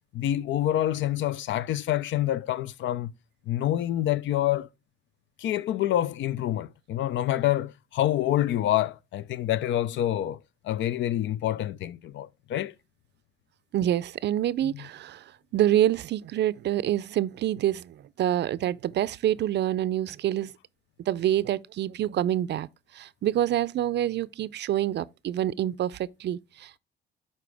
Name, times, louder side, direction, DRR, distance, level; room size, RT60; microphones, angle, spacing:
voice 1, 0.1-3.1 3.5-4.7 5.4-10.4 10.6-12.7 14.6-14.9, left 12 dB, 70° left, 0.5 m, -27 dB
voice 2, 13.7-15.2 15.5-20.5 21.1-22.7 23.0-26.8, right 12 dB, 60° right, 0.4 m, -26 dB
11.0 x 4.2 x 3.4 m
cardioid pair, 90°, 20 cm